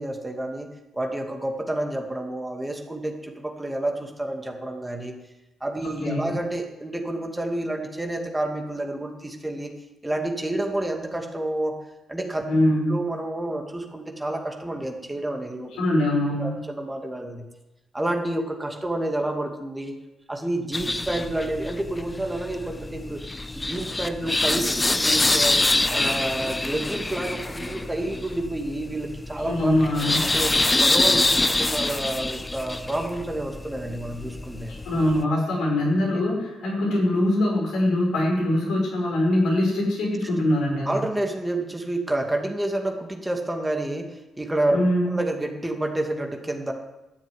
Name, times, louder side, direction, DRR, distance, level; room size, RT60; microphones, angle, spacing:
voice 1, 0.0-5.2 5.6-9.7 10.0-11.7 12.1-12.5 12.9-15.7 16.4-17.5 17.9-19.9 20.3-23.2 23.5-25.6 25.9-29.8 30.2-34.7 36.1-36.2 40.9-44.8 45.0-46.7, right 1 dB, 15° right, 3 dB, 2.4 m, -29 dB
voice 2, 6.0-6.3 12.5-12.9 15.7-16.6 29.4-30.4 34.7-41.0 44.7-45.1, left 1 dB, 75° left, -2 dB, 5.9 m, -23 dB
sound 1, 20.7-35.2, left 2 dB, 20° left, 1.0 m, -25 dB
13.0 x 7.4 x 9.5 m, 1.0 s
supercardioid pair, 55°, 0 cm